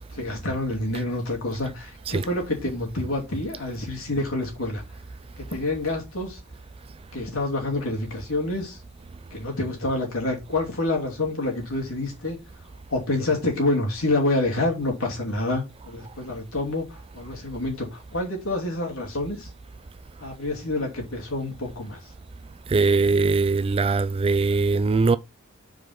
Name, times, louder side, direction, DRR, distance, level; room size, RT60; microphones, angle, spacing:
voice 1, 0.1-4.8 5.4-6.4 7.1-8.8 9.3-12.4 12.9-19.5 20.2-22.0, left 2 dB, 70° left, 2.6 m, -27 dB
voice 2, 22.7-25.2, right 4 dB, 25° right, 0.4 m, -21 dB
5.0 x 4.7 x 5.8 m
head